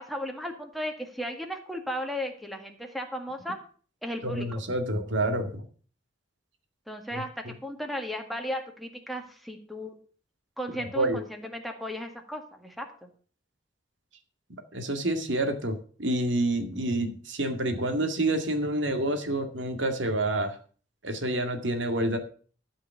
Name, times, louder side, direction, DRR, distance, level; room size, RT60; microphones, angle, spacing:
voice 1, 0.0-3.6 4.0-4.5 6.9-10.0 10.6-13.1, equal, ahead, 3 dB, 1.8 m, -35 dB
voice 2, 4.2-5.6 7.1-7.5 10.8-11.2 14.7-20.6 21.0-22.2, right 1 dB, 70° right, 6 dB, 2.0 m, -28 dB
12.5 x 5.5 x 7.1 m, 0.42 s
head